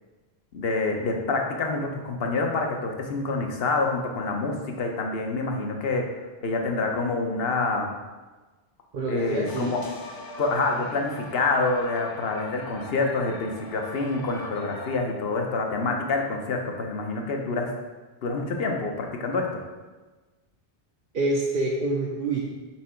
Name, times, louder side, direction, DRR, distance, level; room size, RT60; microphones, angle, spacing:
voice 1, 0.5-6.0 6.4-7.9 9.1-9.8 10.4-17.7 18.2-19.6, left 3 dB, 70° left, 2 dB, 1.0 m, -27 dB
voice 2, 8.9-9.7 21.1-22.4, right 2 dB, 60° right, -2 dB, 0.8 m, -26 dB
sound 1, 9.5-15.0, left 2 dB, 40° left, 0.3 m, -41 dB
6.0 x 3.7 x 4.4 m, 1.3 s
omnidirectional pair, 1.0 m